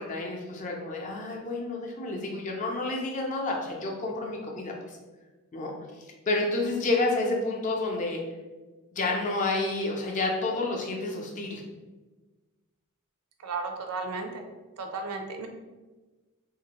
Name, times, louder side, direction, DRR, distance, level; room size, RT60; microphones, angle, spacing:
voice 1, 0.0-5.0 5.5-5.7 6.3-8.2 8.9-11.6, left 2 dB, 35° left, 0 dB, 0.5 m, -29 dB
voice 2, 13.4-14.4 14.8-15.5, right 4 dB, 80° right, 5 dB, 0.4 m, -34 dB
2.9 x 2.5 x 2.9 m, 1.2 s
head